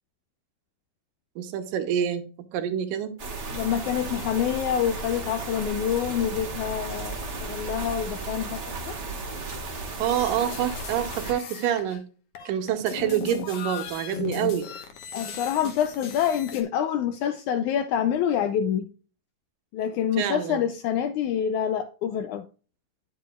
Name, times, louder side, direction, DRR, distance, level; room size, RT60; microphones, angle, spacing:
voice 1, 1.4-2.2 2.5-3.2 10.0-12.0 12.5-14.7 20.2-20.6, right 10 dB, 75° right, 2.4 m, -27 dB
sound 1, 3.2-11.3, right 3 dB, 40° right, 1.0 m, -35 dB
voice 2, 3.5-8.6 8.9-9.0 15.1-18.9 19.7-22.5, left 9 dB, 85° left, 1.7 m, -26 dB
sound 2, 10.1-12.0 12.4-16.6, left 9 dB, 65° left, 2.3 m, -37 dB
10.0 x 6.7 x 2.3 m
omnidirectional pair, 4.0 m